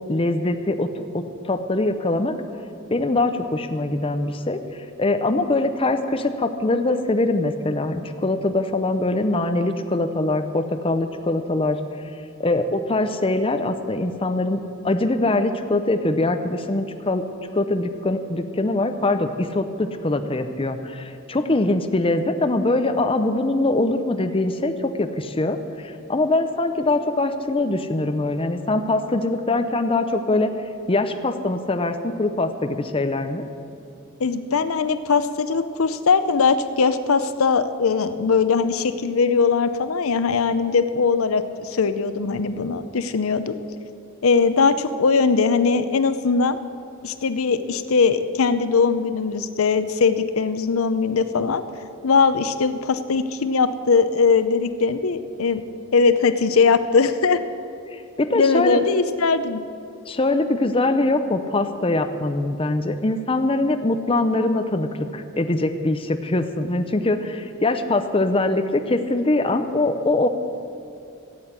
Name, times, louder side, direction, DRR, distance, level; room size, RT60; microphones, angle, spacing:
voice 1, 0.1-2.3 2.9-4.6 5.0-11.8 12.4-14.6 14.8-17.2 17.5-24.7 25.0-30.5 30.9-33.4 57.9-58.8 60.1-70.3, left 2 dB, 25° left, 7 dB, 0.7 m, -23 dB
voice 2, 34.2-43.6 44.2-46.6 47.0-51.6 52.0-55.6 55.9-57.4 58.3-59.6, left 5 dB, 80° left, 11 dB, 0.6 m, -20 dB
15.0 x 8.0 x 8.7 m, 2.5 s
head